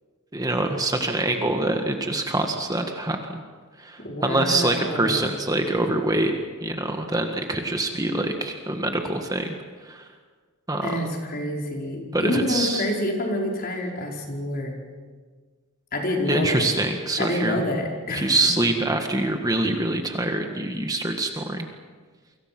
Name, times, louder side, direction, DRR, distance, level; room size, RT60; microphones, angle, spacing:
voice 1, 0.3-3.4 3.8-6.3 6.6-9.5 9.8-10.1 10.7-10.9 12.1-12.8 16.3-17.6 18.1-21.7, right 2 dB, 15° right, 4 dB, 1.7 m, -25 dB
voice 2, 4.0-5.3 10.8-14.7 15.9-16.6 17.2-18.3, left 1 dB, 45° left, 0 dB, 5.2 m, -27 dB
29.5 x 25.5 x 6.1 m, 1.5 s
head